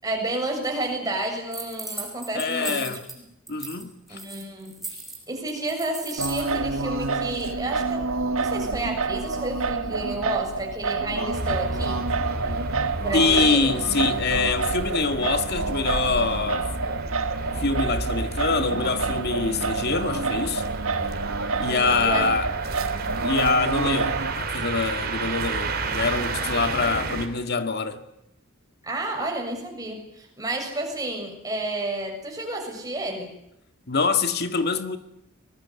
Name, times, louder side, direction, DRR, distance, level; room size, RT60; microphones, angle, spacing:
voice 1, 0.0-2.9 4.1-4.8 5.3-8.1 8.4-12.0 13.0-13.8 21.7-22.3 22.8-23.1 28.8-33.3, right 1 dB, 20° right, 7.2 m, -31 dB
sound 1, 1.5-3.2 3.5-6.5, right 2 dB, ahead, 6.7 m, -36 dB
voice 2, 2.3-3.1 3.5-4.2 13.1-16.7 17.6-20.6 21.6-22.5 23.2-28.0 33.9-35.0, left 4 dB, 50° left, 2.0 m, -25 dB
Singing, 6.2-24.3, right 4 dB, 80° right, 1.7 m, -28 dB
sound 2, 11.3-27.3, right 3 dB, 50° right, 3.8 m, -32 dB
24.0 x 20.0 x 9.5 m
head